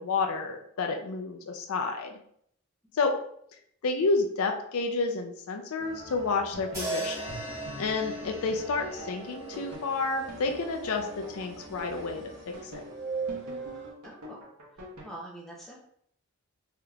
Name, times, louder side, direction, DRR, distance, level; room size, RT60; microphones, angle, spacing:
voice 1, 0.0-2.2 2.9-3.1 3.8-7.2 7.8-12.3 12.6-12.8, left 3 dB, 70° left, 4 dB, 0.4 m, -30 dB
sound 1, 5.8-13.9, right 3 dB, 55° right, 1.1 m, -41 dB
sound 2, 6.5-15.1, equal, 90° right, 0.9 m, -44 dB
sound 3, 6.7-11.0, right 2 dB, 15° right, 1.1 m, -39 dB
voice 2, 14.0-14.4 14.7-15.8, right 1 dB, ahead, -4 dB, 0.6 m, -45 dB
3.4 x 2.8 x 2.3 m, 0.68 s
head